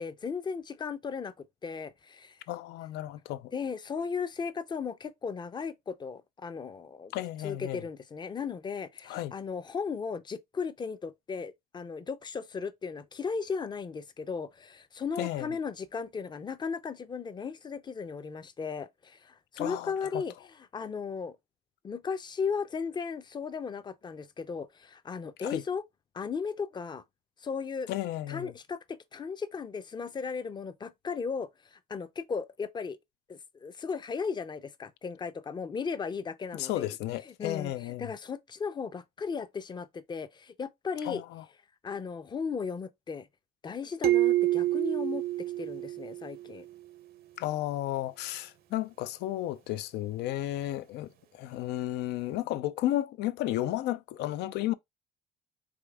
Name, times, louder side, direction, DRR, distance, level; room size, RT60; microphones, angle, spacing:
voice 1, 0.0-2.4 3.5-7.1 7.4-21.4 21.8-25.8 26.1-27.0 27.4-27.9 28.3-33.0 33.3-37.0 37.3-41.2 41.8-43.3 43.6-45.2 45.6-46.7, left 5 dB, 25° left, 0.5 m, -36 dB
voice 2, 2.5-3.5 7.1-7.8 9.1-9.3 15.2-15.5 19.6-20.2 25.4-25.6 27.9-28.5 36.5-38.1 41.0-41.4 47.4-54.7, left 14 dB, 80° left, 0.4 m, -33 dB
sound 1, 44.0-46.6, right 15 dB, 65° right, 0.7 m, -28 dB
4.8 x 3.4 x 2.3 m
cardioid pair, 110°, 17 cm